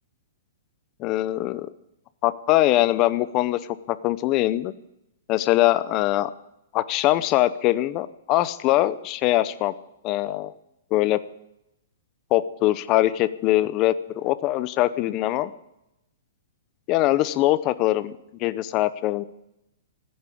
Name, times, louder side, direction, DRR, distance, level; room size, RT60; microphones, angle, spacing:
voice 1, 1.0-1.7 2.2-3.6 3.9-4.7 5.3-6.3 6.7-9.7 10.0-10.5 10.9-11.2 12.3-15.5 16.9-19.2, left 15 dB, 25° left, 15 dB, 0.6 m, -22 dB
15.0 x 9.7 x 8.5 m, 0.87 s
hypercardioid pair, 165°, 0 cm